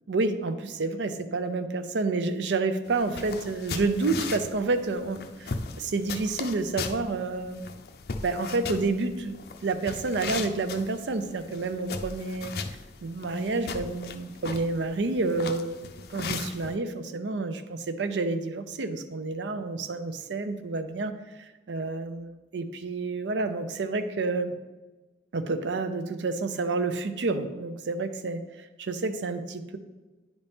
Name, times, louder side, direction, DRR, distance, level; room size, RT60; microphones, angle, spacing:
voice 1, 0.1-7.6 8.2-9.3 9.6-12.5 13.0-24.5 25.3-29.8, right 3 dB, 80° right, 10 dB, 0.5 m, -29 dB
sound 1, 2.9-16.7, left 4 dB, 55° left, 0.4 m, -38 dB
9.3 x 4.1 x 3.5 m, 1.2 s
head